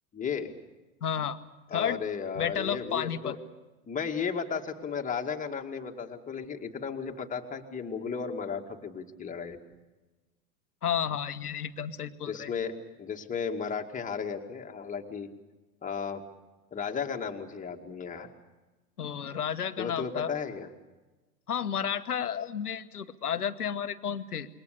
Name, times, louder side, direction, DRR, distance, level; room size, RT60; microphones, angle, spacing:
voice 1, 0.1-0.5 1.7-3.4 3.9-9.6 12.2-15.3 15.8-16.2 16.7-18.3 19.8-20.7, left 6 dB, 15° left, 3 dB, 2.2 m, -34 dB
voice 2, 1.0-1.4 1.7-2.0 2.3-3.4 10.8-12.5 19.0-20.3 21.5-24.5, left 8 dB, 75° left, 11 dB, 1.4 m, -32 dB
27.5 x 22.5 x 6.7 m, 1.2 s
figure-of-eight pair, 90°, 46 cm